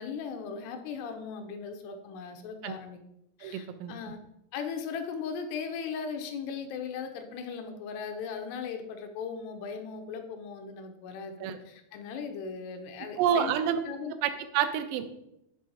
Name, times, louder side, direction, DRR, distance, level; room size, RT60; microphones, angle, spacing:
voice 1, 0.0-3.0 3.4-4.2 4.5-13.5 13.8-14.1, left 6 dB, 80° left, 6 dB, 2.7 m, -38 dB
voice 2, 3.4-3.9 11.4-11.6 13.2-13.8 14.2-15.1, right 9 dB, 90° right, 10 dB, 2.8 m, -28 dB
7.6 x 3.3 x 4.7 m, 0.83 s
omnidirectional pair, 4.8 m